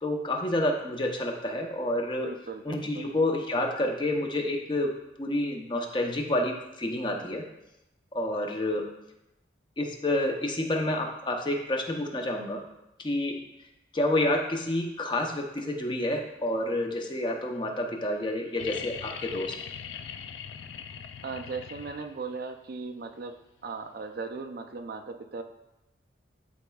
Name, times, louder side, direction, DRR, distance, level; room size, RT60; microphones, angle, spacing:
voice 1, 0.0-2.3 2.6-7.4 8.1-8.9 9.8-12.6 13.0-13.4 13.9-19.5, left 1 dB, 25° left, 2 dB, 0.6 m, -29 dB
voice 2, 2.2-3.1 21.2-23.4 23.6-25.4, right 4 dB, 50° right, 7 dB, 0.4 m, -37 dB
sound 1, 18.6-22.4 24.1-24.2, left 7 dB, 70° left, 0.4 m, -40 dB
11.0 x 4.1 x 2.3 m, 0.90 s
head